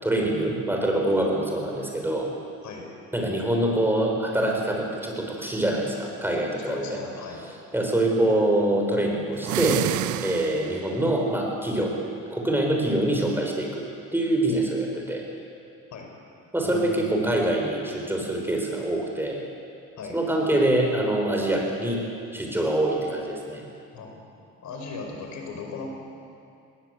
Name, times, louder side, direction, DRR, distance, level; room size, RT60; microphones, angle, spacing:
voice 1, 0.0-2.3 3.1-7.0 7.7-9.9 10.2-12.0 12.3-13.8 14.1-15.2 16.5-19.4 20.1-22.0 22.3-23.6, right 1 dB, 5° right, 0 dB, 6.1 m, -25 dB
voice 2, 6.7-7.5 15.9-16.1 16.6-17.4 20.0-20.2 23.9-24.2 24.6-25.9, left 4 dB, 75° left, 2 dB, 5.2 m, -37 dB
sound 1, 9.4-11.0, right 14 dB, 80° right, 0.6 m, -29 dB
20.0 x 19.5 x 8.4 m, 2.5 s
cardioid pair, 90°, 30 cm